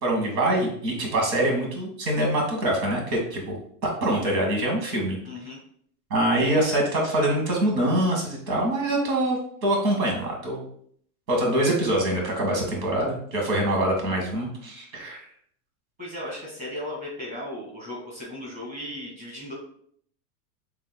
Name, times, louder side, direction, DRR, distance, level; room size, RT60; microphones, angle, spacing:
voice 1, 0.0-3.6 3.8-5.2 6.1-10.7 11.3-15.3, right 1 dB, 85° right, 0 dB, 1.8 m, -24 dB
voice 2, 5.2-5.6 16.0-19.5, left 1 dB, 20° right, -4 dB, 1.7 m, -36 dB
6.0 x 3.2 x 2.2 m, 0.62 s
supercardioid pair, 155°, 49 cm